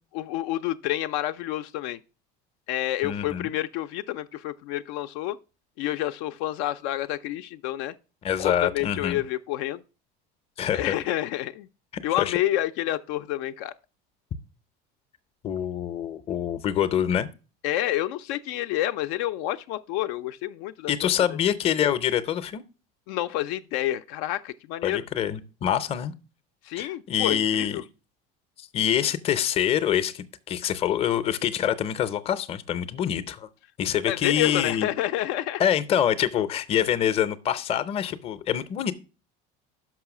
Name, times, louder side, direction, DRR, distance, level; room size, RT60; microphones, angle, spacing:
voice 1, 0.1-2.0 2.7-5.4 5.8-7.9 8.4-9.8 10.7-11.7 12.0-13.7 17.6-21.1 23.1-25.0 26.6-27.8 34.1-35.6, left 14 dB, 70° left, 0.5 m, -29 dB
voice 2, 3.0-3.5 8.2-9.2 10.6-10.9 12.2-12.4 15.4-17.3 20.9-22.6 24.8-26.1 26.8-27.8 28.7-33.5 33.8-34.9 35.6-38.9, left 10 dB, 30° left, 0.6 m, -25 dB
6.1 x 5.6 x 5.9 m
cardioid pair, 155°, 19 cm